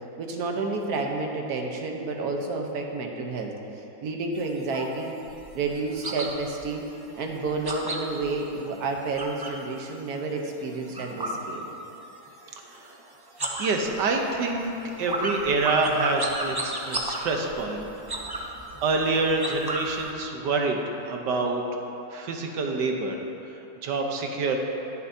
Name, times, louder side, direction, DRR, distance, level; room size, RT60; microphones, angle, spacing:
voice 1, 0.2-5.2 5.5-6.8 7.2-11.6, right 3 dB, 65° right, 1 dB, 1.5 m, -30 dB
sound 1, 4.4-9.7 10.0-12.2 12.4-13.0 13.3-20.1, right 1 dB, 25° right, 0.5 m, -34 dB
voice 2, 13.6-17.9 18.3-20.8 21.1-21.8 22.1-23.2 23.8-24.6, right 3 dB, 80° right, 2 dB, 1.6 m, -27 dB
21.0 x 7.0 x 2.8 m, 2.9 s
omnidirectional pair, 1.9 m